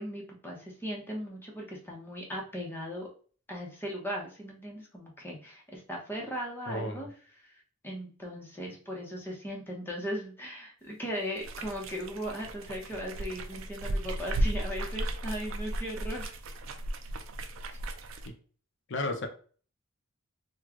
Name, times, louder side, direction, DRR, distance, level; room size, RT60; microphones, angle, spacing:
voice 1, 0.0-3.1 3.5-7.1 7.4-16.4, equal, 10° left, -2 dB, 0.8 m, -38 dB
voice 2, 6.7-7.1 18.9-19.3, left 2 dB, 55° left, 5 dB, 0.6 m, -33 dB
sound 1, 11.4-18.3, right 1 dB, 60° right, 0.4 m, -35 dB
3.1 x 2.3 x 3.6 m, 0.42 s
head